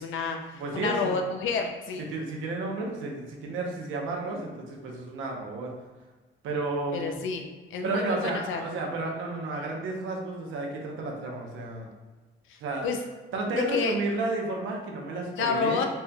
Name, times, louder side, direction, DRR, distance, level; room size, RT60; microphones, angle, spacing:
voice 1, 0.0-2.0 6.9-7.4 7.7-8.6 12.5-13.0 13.7-14.0 15.4-15.9, left 5 dB, 80° left, 4 dB, 0.5 m, -30 dB
voice 2, 0.5-1.2 2.1-5.7 6.4-7.2 7.8-11.9 12.6-12.9 13.3-15.9, right 2 dB, 85° right, 0 dB, 0.8 m, -32 dB
4.2 x 3.3 x 2.3 m, 1.3 s
cardioid pair, 90°, 20 cm